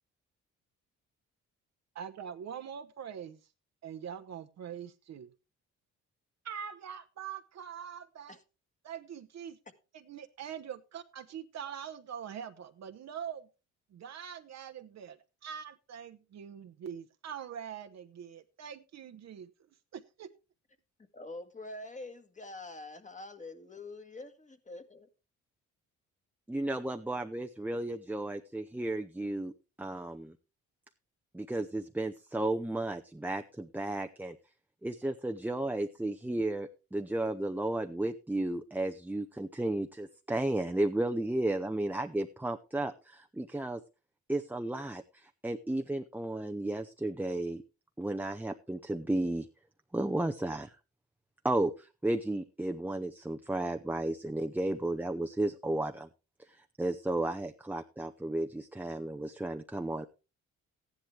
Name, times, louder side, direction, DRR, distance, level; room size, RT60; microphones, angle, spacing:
voice 1, 1.9-3.4 3.8-5.3 6.4-8.4 8.8-9.6 9.9-13.5 13.9-19.5 19.9-20.3, right 8 dB, 60° right, 8 dB, 1.0 m, -43 dB
voice 2, 21.1-25.1, left 2 dB, 25° left, 8 dB, 1.7 m, -45 dB
voice 3, 26.5-29.5 29.8-30.3 31.3-34.4 34.8-43.8 44.3-47.6 48.0-49.5 49.9-50.7 51.4-56.1 56.8-60.1, right 1 dB, 5° right, 5 dB, 0.7 m, -33 dB
14.0 x 10.5 x 3.4 m, 0.31 s
cardioid pair, 90°, 30 cm